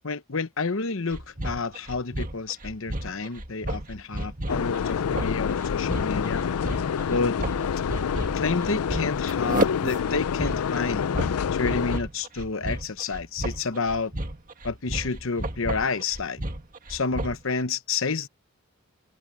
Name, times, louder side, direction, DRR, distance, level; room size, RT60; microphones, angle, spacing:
voice 1, 0.0-6.4 7.1-7.4 8.3-11.0 11.5-14.1 14.6-16.4 16.9-18.3, left 4 dB, 65° left, 0.9 m, -29 dB
sound 1, 1.1-17.5, right 1 dB, 35° right, 1.9 m, -32 dB
sound 2, 4.5-12.0, left 7 dB, 90° left, 0.4 m, -27 dB
open air
head